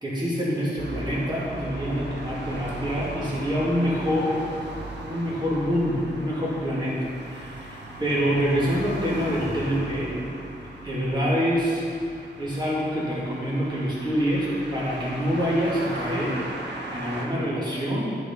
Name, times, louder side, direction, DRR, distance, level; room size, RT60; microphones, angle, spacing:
voice 1, 0.0-4.4 5.0-10.1 10.8-11.8 12.4-16.5 16.9-18.2, equal, 25° right, -7 dB, 2.3 m, -26 dB
sound 1, 0.8-17.3, right 1 dB, 80° right, 1.3 m, -37 dB
11.0 x 4.9 x 5.3 m, 2.4 s
wide cardioid pair, 105°, 18 cm